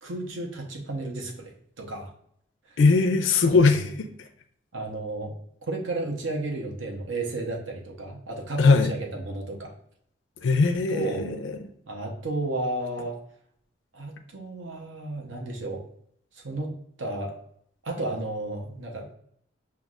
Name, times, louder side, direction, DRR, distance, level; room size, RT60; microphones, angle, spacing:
voice 1, 0.0-1.5 1.8-2.1 2.7-2.8 3.5-3.8 4.7-5.3 5.7-9.7 10.9-11.2 11.9-13.2 13.9-15.8 16.3-17.4 17.8-19.1, right 2 dB, 90° right, 2 dB, 0.8 m, -33 dB
voice 2, 2.8-4.1 8.6-8.9 10.4-11.6, left 4 dB, 80° left, 6 dB, 0.4 m, -20 dB
5.8 x 2.3 x 2.4 m, 0.68 s
head